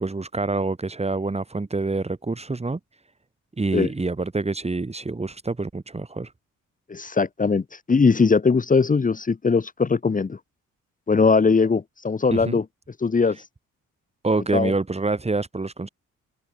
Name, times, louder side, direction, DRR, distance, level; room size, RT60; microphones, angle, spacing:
voice 1, 0.0-2.8 3.6-6.3 12.3-12.6 14.2-15.9, right 3 dB, 20° right, 6.3 m, -26 dB
voice 2, 6.9-10.4 11.1-12.6 13.0-13.4 14.5-14.7, left 4 dB, 25° left, 1.5 m, -20 dB
open air
cardioid pair, 90°, 30 cm